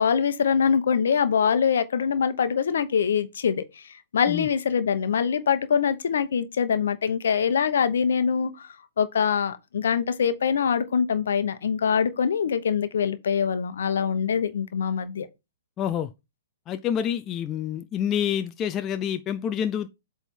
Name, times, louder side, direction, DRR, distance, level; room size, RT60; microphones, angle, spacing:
voice 1, 0.0-3.8 4.1-8.7 9.0-15.3, left 7 dB, 70° left, 1.0 m, -24 dB
voice 2, 15.8-16.1 16.7-19.9, left 9 dB, 25° left, 0.5 m, -27 dB
8.0 x 3.5 x 4.4 m
hypercardioid pair, 120°, 0 cm